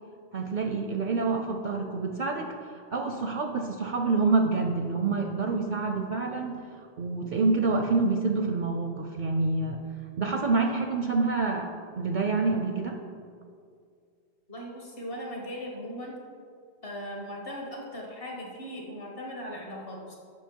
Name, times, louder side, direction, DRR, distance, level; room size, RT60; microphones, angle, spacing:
voice 1, 0.3-6.6 7.0-9.8 10.2-13.0, right 3 dB, 55° right, 4 dB, 0.5 m, -27 dB
voice 2, 14.5-16.2 16.8-20.2, equal, 55° left, -1 dB, 1.6 m, -38 dB
7.2 x 5.8 x 4.5 m, 2.2 s
omnidirectional pair, 1.2 m